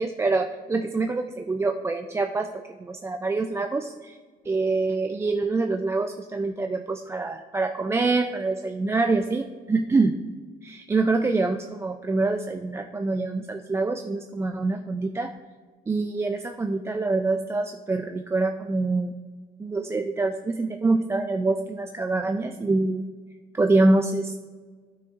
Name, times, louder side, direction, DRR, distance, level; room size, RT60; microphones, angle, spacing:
voice 1, 0.0-4.2 4.4-10.2 10.6-15.3 15.9-19.1 19.6-23.1 23.5-24.4, right 3 dB, 15° right, 6 dB, 0.3 m, -25 dB
11.5 x 5.9 x 2.5 m, 1.5 s
cardioid pair, 110°, 17 cm